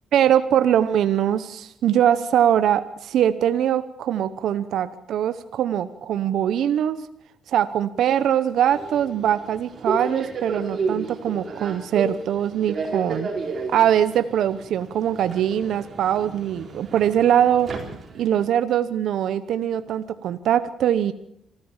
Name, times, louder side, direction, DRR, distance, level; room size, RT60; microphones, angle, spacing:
voice 1, 0.1-7.0 7.5-13.3 13.7-17.7 18.1-21.1, right 10 dB, 75° right, 12 dB, 0.9 m, -22 dB
Subway metro underground, 8.7-18.5, right 4 dB, 45° right, 4.4 m, -32 dB
26.0 x 14.5 x 7.3 m, 0.72 s
cardioid pair, 90°, 0 cm